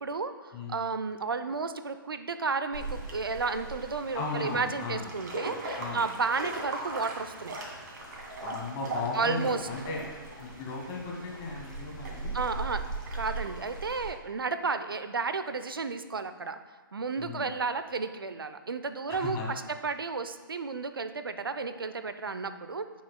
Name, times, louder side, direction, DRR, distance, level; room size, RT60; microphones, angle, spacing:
voice 1, 0.0-0.3 0.7-7.6 9.1-9.6 12.3-12.8 13.1-16.6 16.9-22.8, right 4 dB, 70° right, 10 dB, 0.6 m, -32 dB
sound 1, 2.7-14.1, right 2 dB, 50° right, 2.2 m, -39 dB
voice 2, 4.1-5.1 5.8-6.1 8.4-10.0 10.4-12.4 17.2-17.5 19.1-19.5, left 3 dB, 30° left, -2 dB, 1.9 m, -36 dB
15.0 x 6.4 x 2.2 m, 1.3 s
figure-of-eight pair, 120°, 12 cm